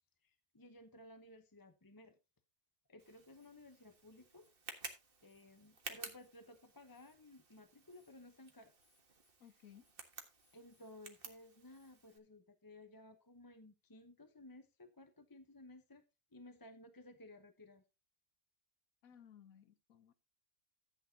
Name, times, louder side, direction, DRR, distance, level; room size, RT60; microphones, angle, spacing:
voice 1, 0.2-2.1 2.9-4.5 5.2-8.7 10.5-16.0 16.3-17.8, left 1 dB, 20° left, 0.8 m, -57 dB
Tick, 3.0-12.2, right 3 dB, 40° right, 1.8 m, -54 dB
voice 2, 9.4-9.8 19.0-20.1, left 9 dB, 80° left, 1.3 m, -60 dB
14.0 x 8.5 x 2.8 m
omnidirectional pair, 1.5 m